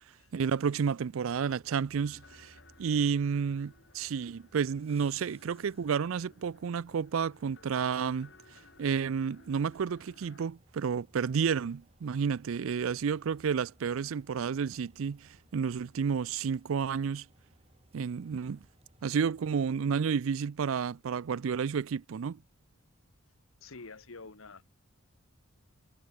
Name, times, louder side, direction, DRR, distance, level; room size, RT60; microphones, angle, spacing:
voice 1, 0.3-2.5 2.8-8.3 8.8-17.3 17.9-18.6 19.0-22.4, right 6 dB, 80° right, 0.4 m, -31 dB
sound 1, 1.3-19.7, right 1 dB, 30° right, 2.3 m, -64 dB
sound 2, 2.0-10.5, left 3 dB, 55° left, 7.2 m, -60 dB
voice 2, 23.6-24.7, left 3 dB, 80° left, 1.5 m, -48 dB
head